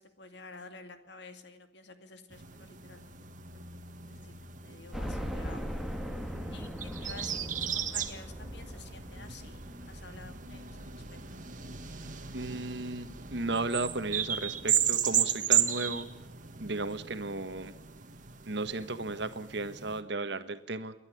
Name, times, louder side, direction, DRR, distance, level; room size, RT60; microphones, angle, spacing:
voice 1, 0.0-3.1 3.5-3.6 4.1-5.8 6.2-11.4 20.2-20.5, left 3 dB, 65° left, 8 dB, 2.4 m, -51 dB
sound 1, 2.3-20.0, right 9 dB, 45° right, 1.8 m, -35 dB
sound 2, 4.9-13.8 14.3-14.4 14.8-14.9 16.1-16.2 16.5-16.6, equal, ahead, 1.8 m, -41 dB
voice 2, 12.3-16.1 16.6-17.7 18.5-20.9, right 2 dB, 65° right, 10 dB, 1.4 m, -35 dB
28.5 x 11.5 x 10.0 m, 0.88 s
head